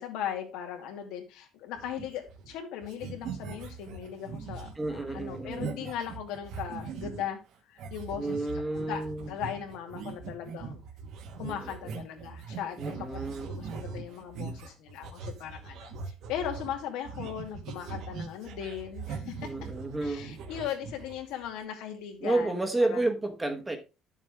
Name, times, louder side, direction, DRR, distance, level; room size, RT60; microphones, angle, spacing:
voice 1, 0.0-7.4 7.7-8.5 8.7-9.0 9.3-10.8 11.4-19.5 20.0-23.0, left 9 dB, 85° left, 2.3 m, -38 dB
sound 1, 1.8-2.6 2.8-7.3 7.8-21.5, right 5 dB, 55° right, 1.2 m, -41 dB
voice 2, 4.7-5.9 8.1-9.3 11.4-11.7 12.8-13.7 19.4-20.3 22.2-23.8, right 2 dB, 10° right, 1.1 m, -31 dB
10.5 x 7.2 x 3.4 m
cardioid pair, 180°, 0 cm